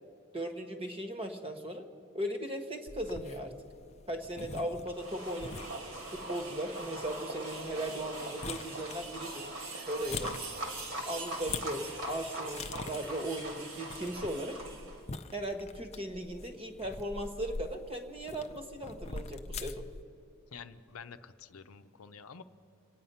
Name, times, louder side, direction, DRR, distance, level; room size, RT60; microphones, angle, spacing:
voice 1, 0.3-1.9 2.1-3.5 4.1-5.7 6.1-9.5 9.9-10.3 11.0-14.6 15.3-19.8, right 1 dB, 25° right, 6 dB, 1.3 m, -37 dB
sound 1, 2.9-20.0, left 4 dB, 30° left, 0.5 m, -45 dB
sound 2, 4.9-15.0, right 2 dB, 65° right, 2.2 m, -41 dB
voice 2, 20.5-22.4, left 6 dB, 75° left, 10 dB, 0.7 m, -49 dB
27.5 x 9.3 x 5.6 m, 2.6 s
head